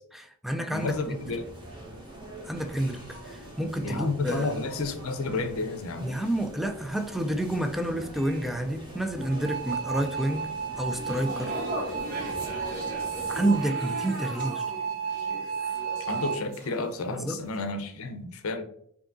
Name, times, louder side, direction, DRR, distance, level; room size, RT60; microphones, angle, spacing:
voice 1, 0.1-0.9 1.3-1.4 2.4-4.5 6.0-10.5 10.8-11.6 13.3-14.6 17.1-17.4, right 1 dB, ahead, 6 dB, 0.3 m, -29 dB
voice 2, 0.7-1.5 3.8-6.1 16.0-18.6, left 3 dB, 70° left, 7 dB, 0.6 m, -31 dB
sound 1, 0.7-13.7, right 1 dB, 20° right, 1.1 m, -44 dB
sound 2, 9.2-16.4, right 6 dB, 65° right, 1.5 m, -33 dB
sound 3, 10.9-17.2 17.4-17.7, equal, 40° right, 1.5 m, -38 dB
4.8 x 2.7 x 2.6 m, 0.70 s
head